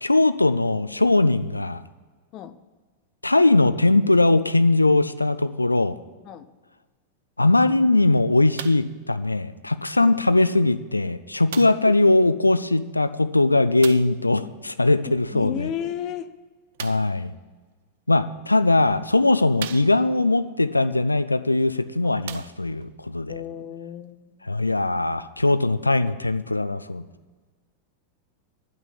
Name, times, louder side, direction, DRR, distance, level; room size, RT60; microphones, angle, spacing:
voice 1, 0.0-1.8 3.2-6.0 7.4-15.7 16.8-17.3 18.1-23.4 24.5-27.1, left 2 dB, 85° left, 14 dB, 0.4 m, -20 dB
sound 1, 8.6-9.0 9.9-10.0 11.5-11.9 13.8-14.2 16.7-17.2 18.2-18.3 18.9-19.0 19.6-20.3 21.5-21.6 22.2-22.9 23.7-23.8, right 11 dB, 55° right, 0.4 m, -38 dB
voice 2, 15.0-16.3 22.0-22.4 23.3-24.5, left 10 dB, 40° left, 13 dB, 0.6 m, -34 dB
10.5 x 6.2 x 8.3 m, 1.4 s
figure-of-eight pair, 90°, 0 cm